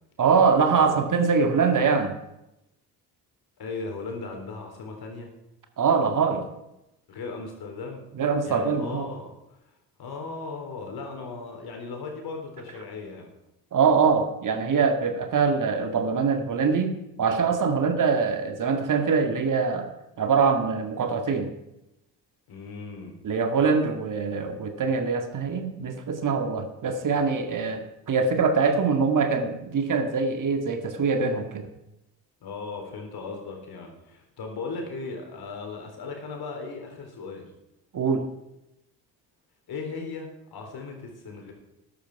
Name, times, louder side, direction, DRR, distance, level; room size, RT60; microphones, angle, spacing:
voice 1, 0.2-2.1 5.8-6.4 8.1-9.1 13.7-19.9 20.2-21.5 23.2-31.7 37.9-38.3, right 5 dB, 45° right, 6 dB, 2.0 m, -23 dB
voice 2, 3.6-5.3 7.1-8.1 8.4-9.3 10.0-13.3 17.5-17.8 22.5-23.2 32.4-37.5 39.7-41.5, left 4 dB, 55° left, 2 dB, 4.0 m, -37 dB
13.0 x 11.5 x 4.8 m, 0.90 s
hypercardioid pair, 55°, 45 cm